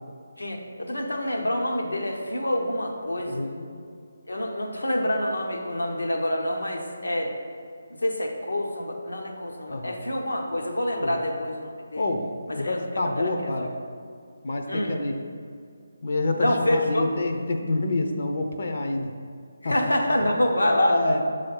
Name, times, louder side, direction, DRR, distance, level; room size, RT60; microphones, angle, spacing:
voice 1, 0.4-3.5 4.3-7.3 8.0-12.1 12.5-13.3 14.7-15.0 16.4-17.0 19.6-20.9, left 1 dB, 85° left, 1 dB, 1.0 m, -27 dB
voice 2, 3.3-3.7 9.7-10.0 11.0-11.2 12.0-12.3 12.6-13.7 14.4-15.2 16.0-19.1 19.6-19.7 20.7-21.2, left 2 dB, 55° left, 3 dB, 0.7 m, -27 dB
6.5 x 3.4 x 5.5 m, 2.3 s
figure-of-eight pair, 155°, 0 cm